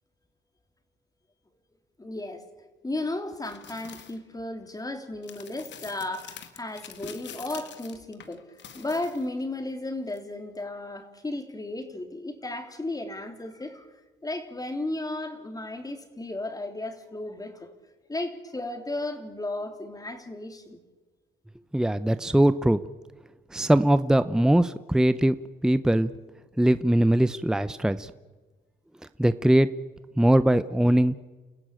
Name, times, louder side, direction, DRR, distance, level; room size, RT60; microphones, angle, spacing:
voice 1, 2.0-2.4 2.8-8.4 8.7-13.9 14.2-17.7 18.1-20.8, left 2 dB, 20° left, 6 dB, 3.4 m, -34 dB
sound 1, 3.4-4.2 5.2-9.4 10.1-10.2, left 8 dB, 65° left, 2.0 m, -46 dB
voice 2, 21.7-22.8 23.5-25.3 25.6-26.1 26.6-28.1 29.2-29.7 30.2-31.1, right 1 dB, 5° right, 13 dB, 0.7 m, -21 dB
29.5 x 15.0 x 9.0 m, 1.3 s
cardioid pair, 90°, 20 cm